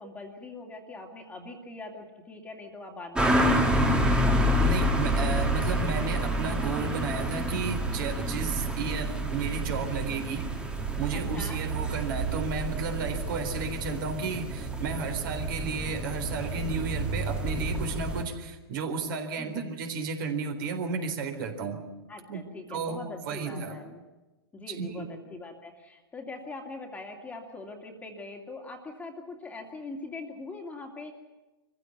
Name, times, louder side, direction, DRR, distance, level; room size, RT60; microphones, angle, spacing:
voice 1, 0.0-3.8 11.1-11.6 19.4-19.6 22.1-24.0 24.5-31.1, left 3 dB, 10° left, 2 dB, 2.5 m, -42 dB
sound 1, 3.1-18.2, right 1 dB, 5° right, 2.0 m, -28 dB
voice 2, 4.6-10.5 11.0-21.8 22.3-22.4 22.7-23.8 24.7-25.0, right 4 dB, 55° right, 6 dB, 3.8 m, -33 dB
24.0 x 15.5 x 9.3 m, 1.1 s
hypercardioid pair, 125°, 14 cm